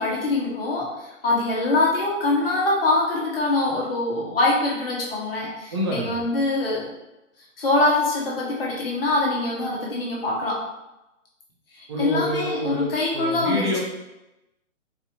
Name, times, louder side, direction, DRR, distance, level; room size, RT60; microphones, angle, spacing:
voice 1, 0.0-6.9 7.6-10.6 11.7-13.7, left 2 dB, 45° left, -4 dB, 1.1 m, -24 dB
voice 2, 5.7-6.2 11.9-13.8, left 1 dB, 20° right, -3 dB, 0.5 m, -27 dB
4.1 x 2.6 x 2.8 m, 0.97 s
hypercardioid pair, 145°, 39 cm